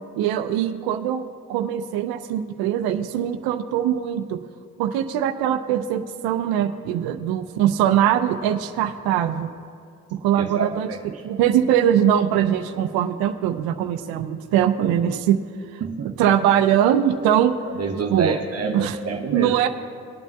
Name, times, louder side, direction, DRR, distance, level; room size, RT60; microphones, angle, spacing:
voice 1, 0.2-1.2 1.5-4.4 4.8-9.5 10.1-10.9 11.2-15.4 15.7-17.5 18.1-18.4 18.7-19.0 19.3-19.7, right 10 dB, 75° right, 9 dB, 0.6 m, -21 dB
voice 2, 10.4-11.0 15.8-16.1 17.7-19.6, right 4 dB, 40° right, 2 dB, 0.9 m, -27 dB
19.5 x 9.0 x 2.3 m, 2.3 s
supercardioid pair, 60°, 37 cm